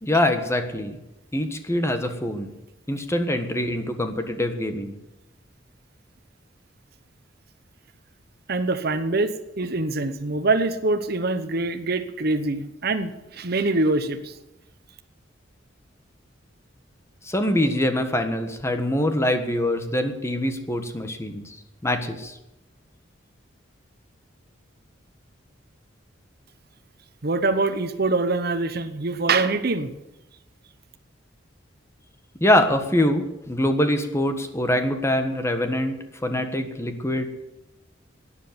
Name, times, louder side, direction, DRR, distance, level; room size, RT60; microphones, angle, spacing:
voice 1, 0.0-1.0 1.3-2.5 2.9-5.0 17.2-21.6 21.8-22.4 32.4-37.3, left 1 dB, 15° left, 7 dB, 1.4 m, -24 dB
voice 2, 8.5-14.3 27.2-29.9, right 3 dB, 55° right, 10 dB, 1.0 m, -24 dB
12.0 x 10.0 x 9.5 m, 0.98 s
head